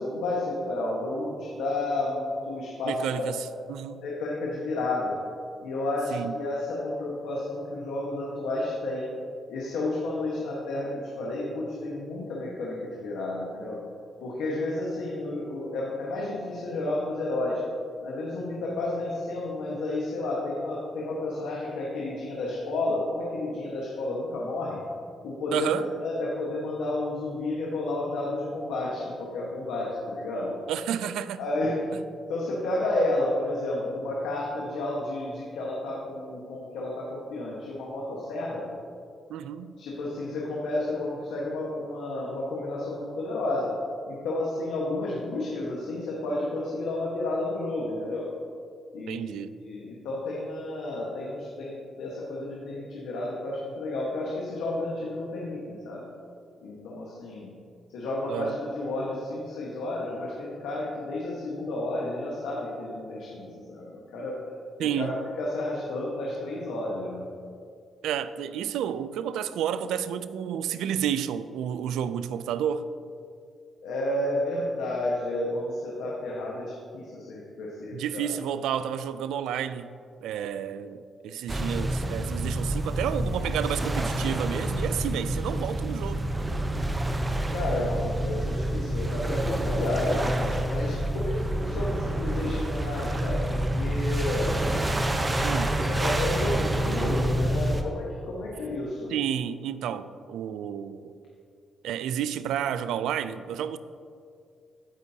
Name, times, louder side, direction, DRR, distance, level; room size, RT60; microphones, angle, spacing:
voice 1, 0.0-3.2 4.0-5.2 5.6-9.1 9.5-13.8 14.2-17.6 18.0-24.8 25.2-30.5 31.4-31.8 32.3-38.7 39.8-43.7 44.1-48.3 48.9-49.3 49.6-56.1 56.6-57.5 57.9-64.4 64.8-67.3 73.8-78.3 87.5-94.6 95.8-99.2, left 2 dB, 90° left, 1.3 m, -31 dB
voice 2, 2.8-4.0 6.1-6.4 25.5-25.9 30.7-31.4 39.3-39.7 49.1-49.6 58.3-58.5 64.8-65.2 68.0-72.9 77.9-80.0 80.2-86.3 95.4-95.8 99.1-101.1 101.8-103.8, right 9 dB, 85° right, 0.3 m, -31 dB
sound 1, 81.5-97.8, right 1 dB, 20° right, 0.8 m, -28 dB
15.5 x 5.3 x 2.8 m
cardioid pair, 65°, 0 cm